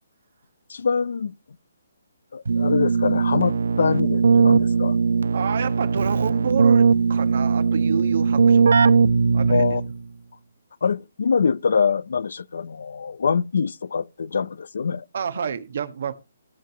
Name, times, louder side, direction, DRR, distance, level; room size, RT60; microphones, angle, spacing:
voice 1, 0.7-1.3 2.3-5.0 9.5-9.8 10.8-15.0, left 5 dB, 65° left, 0.6 m, -24 dB
Keyboard (musical), 2.4-10.0, right 5 dB, 85° right, 0.7 m, -19 dB
voice 2, 5.3-8.9 9.3-9.8 15.1-16.1, right 6 dB, 55° right, 1.6 m, -29 dB
16.5 x 7.7 x 3.1 m
hypercardioid pair, 170°, 0 cm